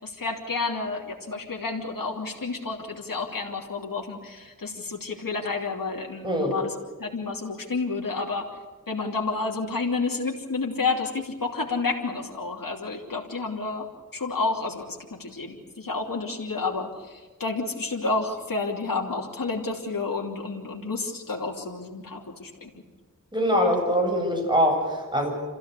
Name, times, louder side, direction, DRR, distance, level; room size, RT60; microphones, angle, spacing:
voice 1, 0.0-8.5 8.9-13.9 14.1-22.7, left 3 dB, 80° left, -1 dB, 3.0 m, -30 dB
voice 2, 23.3-25.3, equal, 15° right, 2 dB, 7.9 m, -23 dB
27.0 x 15.5 x 8.4 m, 1.4 s
wide cardioid pair, 55°, 33 cm